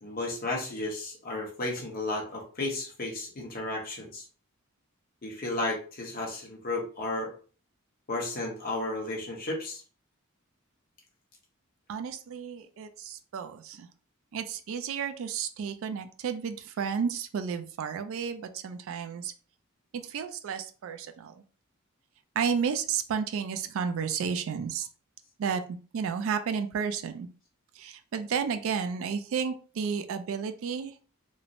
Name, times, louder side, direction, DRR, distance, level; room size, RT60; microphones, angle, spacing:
voice 1, 0.0-4.2 5.2-7.3 8.1-9.8, left 2 dB, 40° left, -1 dB, 0.8 m, -33 dB
voice 2, 11.9-13.9 14.3-19.3 19.9-21.3 22.4-24.9 25.4-27.3 27.8-31.0, right 6 dB, 65° right, 8 dB, 0.3 m, -32 dB
3.0 x 2.0 x 2.5 m, 0.38 s
head